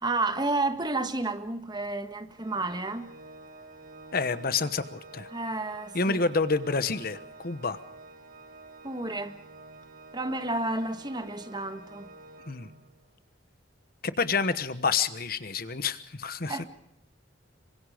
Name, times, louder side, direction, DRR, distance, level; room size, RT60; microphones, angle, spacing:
voice 1, 0.0-3.1 5.3-6.2 8.8-9.4 10.1-12.1 16.4-16.6, right 2 dB, 20° right, 1.6 m, -31 dB
Organ, 2.4-13.1, right 2 dB, 45° right, 1.7 m, -49 dB
voice 2, 4.1-5.3 5.9-7.8 12.5-12.7 14.0-16.6, left 4 dB, 50° left, 1.1 m, -28 dB
26.5 x 24.5 x 5.0 m
head